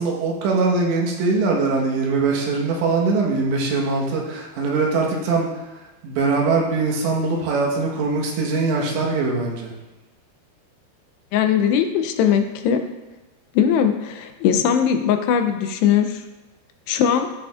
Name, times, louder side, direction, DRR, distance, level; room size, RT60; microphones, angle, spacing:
voice 1, 0.0-5.5 6.0-9.7, right 3 dB, 85° right, -1 dB, 3.6 m, -22 dB
voice 2, 11.3-12.8 13.6-16.2 16.9-17.3, left 8 dB, 80° left, 6 dB, 2.6 m, -19 dB
16.0 x 6.6 x 2.4 m, 1.1 s
omnidirectional pair, 4.9 m